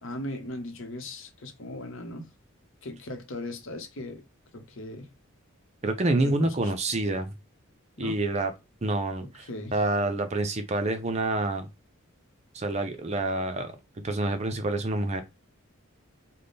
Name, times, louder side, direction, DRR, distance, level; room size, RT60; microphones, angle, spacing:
voice 1, 0.0-2.3 2.8-4.2 4.5-5.1 6.1-6.5 8.0-8.2 9.2-9.8, left 1 dB, 60° left, 0.9 m, -38 dB
voice 2, 5.8-7.3 8.0-8.5 8.8-11.7 12.5-13.7 14.0-15.2, right 2 dB, 30° right, 0.5 m, -27 dB
3.5 x 2.1 x 3.9 m
head